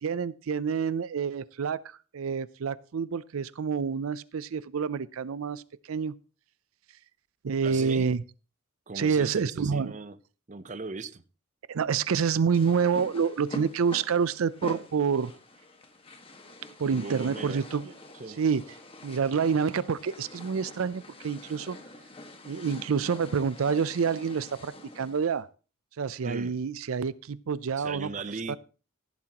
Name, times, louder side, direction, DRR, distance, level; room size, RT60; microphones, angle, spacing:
voice 1, 0.0-5.6 5.9-6.2 7.4-8.2 9.0-9.9 11.7-15.3 16.8-17.8 18.4-18.6 19.0-21.8 22.4-25.5 26.0-28.1 28.5-28.6, right 6 dB, 90° right, 0.5 m, -28 dB
voice 2, 7.6-8.1 8.9-10.2 10.5-11.2 16.8-17.6 18.1-18.4 26.2-26.6 27.8-28.6, right 3 dB, 35° right, 0.6 m, -38 dB
sound 1, 12.5-25.3, left 1 dB, 25° left, 1.5 m, -45 dB
15.5 x 11.5 x 2.9 m
head